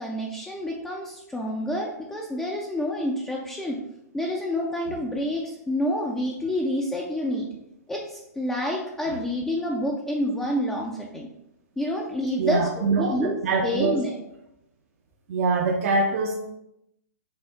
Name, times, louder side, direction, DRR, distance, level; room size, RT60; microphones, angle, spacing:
voice 1, 0.0-3.8 4.1-7.5 7.9-11.3 11.8-13.4 13.6-14.1, left 1 dB, 5° left, -2 dB, 0.4 m, -28 dB
voice 2, 12.4-14.0 15.3-16.3, right 4 dB, 50° right, 0 dB, 0.5 m, -24 dB
5.7 x 2.0 x 3.8 m, 0.80 s
hypercardioid pair, 130°, 9 cm